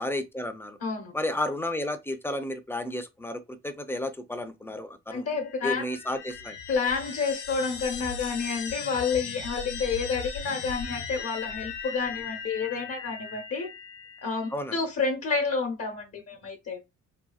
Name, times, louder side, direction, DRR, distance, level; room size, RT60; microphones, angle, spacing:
voice 1, 0.0-0.8 1.1-5.3 5.6-6.6 14.5-14.7, left 1 dB, 10° left, 0.4 m, -32 dB
voice 2, 0.8-1.1 5.1-5.8 6.7-13.7 14.2-16.8, left 5 dB, 55° left, 0.8 m, -29 dB
sound 1, 5.3-14.6, left 6 dB, 80° left, 0.7 m, -38 dB
2.7 x 2.7 x 2.3 m
cardioid pair, 90°, 30 cm